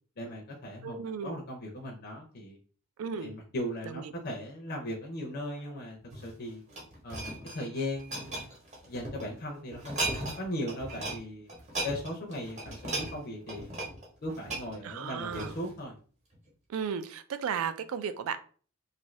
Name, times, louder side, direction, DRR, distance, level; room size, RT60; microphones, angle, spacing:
voice 1, 0.2-2.6 3.2-6.6 7.0-8.5 8.9-11.5 11.8-13.8 14.2-16.0, left 1 dB, 45° left, 0 dB, 0.5 m, -38 dB
voice 2, 0.8-1.4 3.0-3.3 3.9-4.1 14.8-15.6 16.7-18.4, right 7 dB, 70° right, 11 dB, 0.3 m, -35 dB
sound 1, 6.0-9.2 9.7-10.4 10.7-11.2 11.5-15.8 16.3-16.5, right 2 dB, 35° right, 0.9 m, -37 dB
2.6 x 2.5 x 3.1 m, 0.42 s
head